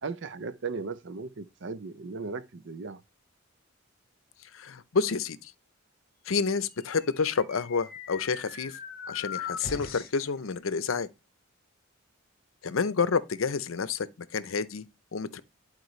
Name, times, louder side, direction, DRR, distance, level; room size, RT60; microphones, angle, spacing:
voice 1, 0.0-3.0, right 4 dB, 60° right, 0.6 m, -37 dB
voice 2, 4.5-5.5 6.3-8.7 9.1-11.1 12.6-14.1 14.3-14.9 15.1-15.4, left 5 dB, 80° left, 0.6 m, -29 dB
sound 1, 6.7-10.3, left 6 dB, 50° left, 1.3 m, -41 dB
10.5 x 4.4 x 3.1 m
head